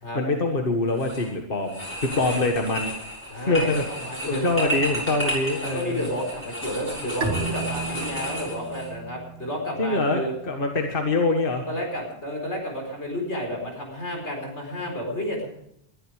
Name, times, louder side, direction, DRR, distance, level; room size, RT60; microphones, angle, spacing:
voice 1, 0.1-2.9 3.4-3.9 4.3-6.0 9.8-11.7, left 2 dB, 55° left, 3 dB, 1.7 m, -24 dB
sound 1, 0.9-1.3 1.7-8.9, equal, 10° left, 7.1 m, -32 dB
voice 2, 2.0-2.4 3.3-4.7 5.6-10.3 11.7-15.5, equal, 85° left, 1 dB, 5.0 m, -31 dB
Bowed string instrument, 7.2-10.7, right 4 dB, 70° right, 2.2 m, -34 dB
21.0 x 12.0 x 5.0 m, 0.76 s
omnidirectional pair, 1.1 m